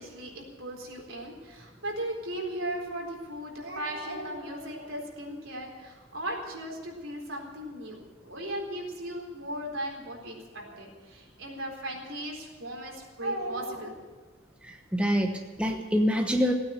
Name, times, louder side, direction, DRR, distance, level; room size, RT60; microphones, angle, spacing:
voice 1, 0.0-14.0, right 1 dB, 75° right, 0 dB, 4.0 m, -37 dB
voice 2, 14.6-16.5, equal, 5° right, 3 dB, 1.0 m, -26 dB
17.0 x 9.3 x 9.0 m, 1.4 s
head